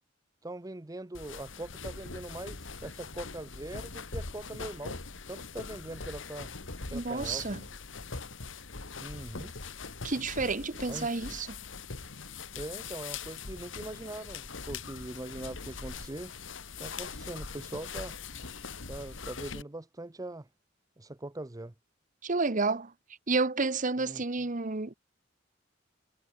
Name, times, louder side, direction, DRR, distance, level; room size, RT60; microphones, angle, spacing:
voice 1, 0.4-5.0 5.3-6.5 6.9-7.5 9.0-9.5 10.9-11.3 12.6-16.4 16.8-18.2 18.9-20.5 21.0-21.7 24.0-24.2, right 2 dB, 20° right, 0.7 m, -42 dB
sound 1, 1.1-19.6, left 4 dB, 75° left, 2.1 m, -42 dB
voice 2, 6.9-7.6 10.0-11.5 22.2-22.9 23.3-24.9, right 3 dB, 40° right, 1.1 m, -30 dB
head